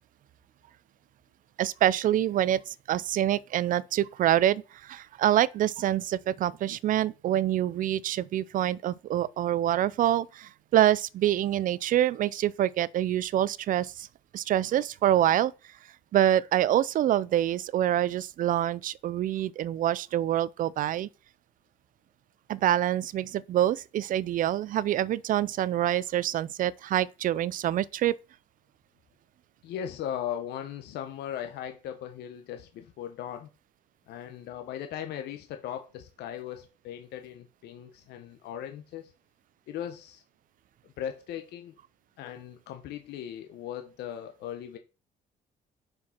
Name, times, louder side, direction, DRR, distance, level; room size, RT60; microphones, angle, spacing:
voice 1, 1.6-14.1 14.3-15.5 16.1-21.1 22.5-28.1, right 12 dB, 55° right, 0.5 m, -26 dB
voice 2, 29.6-33.5 34.1-39.1 39.7-40.2 41.0-41.7 42.2-44.8, left 10 dB, 75° left, 1.0 m, -38 dB
6.1 x 4.8 x 5.7 m
cardioid pair, 110°, 17 cm